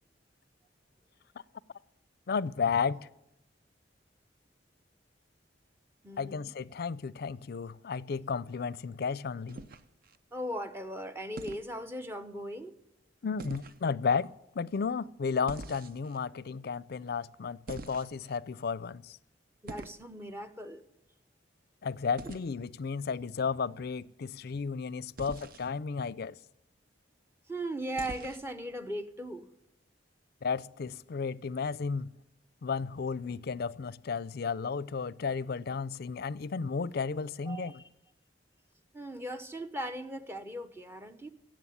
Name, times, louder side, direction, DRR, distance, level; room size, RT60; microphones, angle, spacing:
voice 1, 2.3-3.0 6.2-9.6 13.2-19.2 21.8-26.4 30.4-32.1 32.6-37.7, left 5 dB, 60° left, 0.5 m, -33 dB
voice 2, 6.0-6.5 10.3-12.7 19.6-20.8 27.5-29.5 37.5-37.8 38.9-41.3, right 1 dB, 15° right, 0.9 m, -38 dB
sound 1, 9.5-10.2 11.4-11.7 13.4-13.8 15.5-16.2 17.7-18.4 19.7-20.0 22.2-22.5 25.2-25.7 28.0-28.5, right 3 dB, 50° right, 0.7 m, -44 dB
17.0 x 7.7 x 9.7 m
head